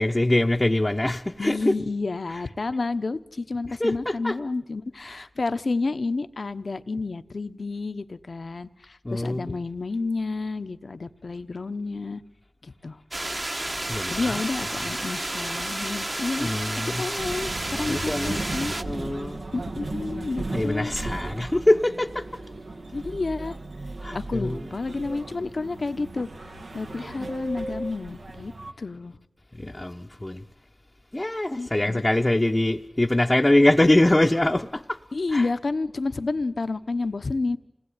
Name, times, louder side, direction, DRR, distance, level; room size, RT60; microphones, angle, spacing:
voice 1, 0.0-1.7 2.3-2.4 3.7-4.4 5.0-5.3 9.0-9.6 13.9-14.4 16.4-17.1 17.9-18.5 18.8-19.4 20.5-22.2 24.0-24.6 29.6-30.4 31.1-35.0 35.3-35.5, left 1 dB, 25° left, 0.9 m, -23 dB
voice 2, 1.4-12.2 12.6-13.0 14.1-16.5 17.0-18.7 19.5-20.9 22.9-23.6 24.1-26.3 26.7-28.5 28.8-29.2 31.6-32.0 35.1-37.6, left 3 dB, 70° left, 1.1 m, -30 dB
sound 1, 13.1-18.8, right 1 dB, 30° right, 1.2 m, -31 dB
sound 2, 17.2-28.7, right 2 dB, 80° right, 1.6 m, -36 dB
27.5 x 19.0 x 9.8 m
wide cardioid pair, 80°, 0 cm